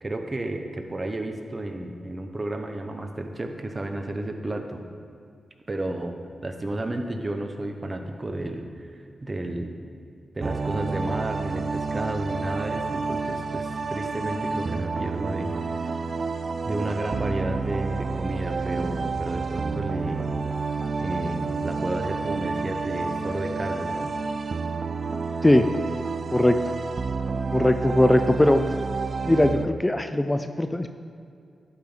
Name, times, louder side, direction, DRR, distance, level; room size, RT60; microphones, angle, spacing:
voice 1, 0.0-4.8 5.7-6.1 6.4-9.8 10.3-15.9 16.6-20.3 21.0-24.1, right 1 dB, 35° right, 5 dB, 1.0 m, -32 dB
sound 1, 10.4-29.7, right 4 dB, 55° right, 0.3 m, -29 dB
voice 2, 26.3-26.7 27.5-28.6 29.2-30.9, left 1 dB, 15° left, 8 dB, 0.5 m, -20 dB
11.5 x 5.4 x 3.9 m, 2.4 s
supercardioid pair, 45°, 0 cm